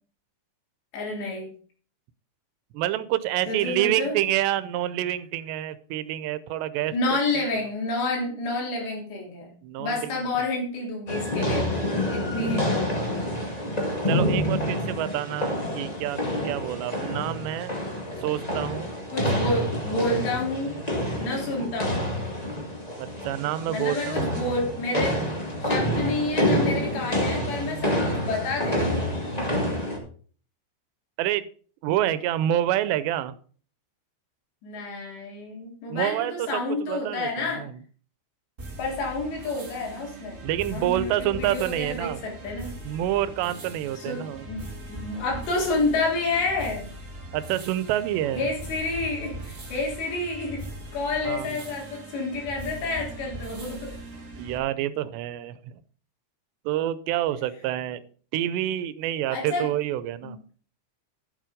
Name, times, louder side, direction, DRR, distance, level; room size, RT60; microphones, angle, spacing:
voice 1, 0.9-1.5 3.5-4.2 6.9-9.5 9.8-13.1 18.2-18.3 19.1-20.7 21.2-22.0 23.7-25.3 25.6-29.0 34.6-37.6 38.8-40.4 40.7-42.7 44.0-46.9 48.3-50.7 50.9-53.9 59.3-59.7 60.2-60.3, left 2 dB, 85° left, -1 dB, 5.6 m, -29 dB
voice 2, 2.7-6.9 9.6-10.2 14.1-16.2 16.4-17.7 18.2-18.9 23.0-24.4 31.2-31.5 31.8-33.3 35.9-37.8 40.4-42.2 42.8-44.5 47.3-48.5 51.2-51.5 54.4-55.7 56.7-58.0 58.3-60.4, right 13 dB, 85° right, 15 dB, 2.9 m, -27 dB
sound 1, 11.1-30.0, left 1 dB, 65° left, 0.4 m, -28 dB
sound 2, 38.6-54.6, right 1 dB, 60° right, 0.8 m, -40 dB
11.5 x 7.6 x 5.1 m, 0.43 s
omnidirectional pair, 4.9 m